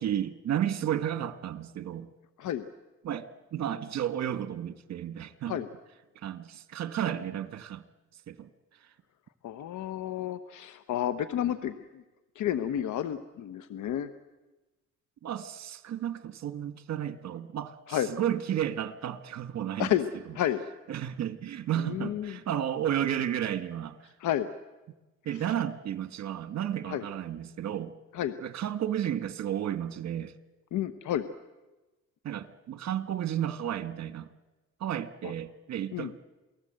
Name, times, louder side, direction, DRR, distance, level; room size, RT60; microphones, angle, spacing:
voice 1, 0.0-2.1 3.0-5.6 6.1-7.8 8.3-8.5 8.8-8.9 15.2-19.9 20.9-24.1 25.2-27.9 28.4-30.3 32.2-34.3 34.8-36.2, right 10 dB, 60° right, 1.5 m, -32 dB
voice 2, 9.4-12.0 12.3-14.1 17.9-18.1 19.8-20.1 20.3-20.6 21.8-22.4 24.2-24.5 26.9-27.0 28.1-28.4 30.7-31.3 35.2-35.3 35.9-36.1, left 11 dB, 75° left, 1.0 m, -31 dB
28.5 x 19.0 x 7.9 m
cardioid pair, 90°, 30 cm